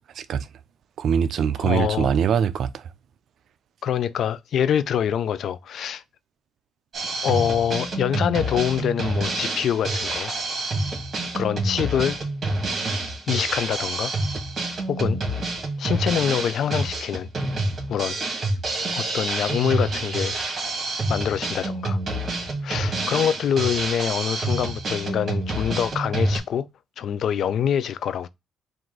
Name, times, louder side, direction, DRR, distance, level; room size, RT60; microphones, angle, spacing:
voice 1, 0.1-0.5 1.0-2.9, right 8 dB, 65° right, 0.4 m, -23 dB
voice 2, 1.6-2.1 3.8-6.0 7.2-10.3 11.3-12.2 13.3-14.1 14.9-15.2 15.8-17.3 17.9-18.2 18.9-20.4 21.1-22.0 22.6-26.7 27.0-28.3, left 9 dB, 65° left, 0.3 m, -25 dB
Drum kit, 6.9-26.4, right 2 dB, 45° right, 2.0 m, -27 dB
4.6 x 2.6 x 3.7 m
cardioid pair, 90°, 0 cm